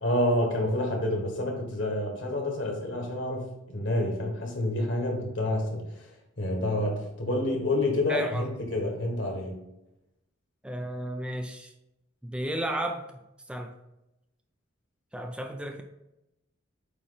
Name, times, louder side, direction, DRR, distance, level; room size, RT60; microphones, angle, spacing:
voice 1, 0.0-5.8 6.4-9.6, left 1 dB, 60° left, 1 dB, 1.5 m, -28 dB
voice 2, 8.1-8.5 10.6-11.7 12.2-13.2 13.5-13.7 15.1-15.8, equal, 5° right, 4 dB, 0.4 m, -33 dB
8.3 x 3.1 x 4.0 m, 0.91 s
head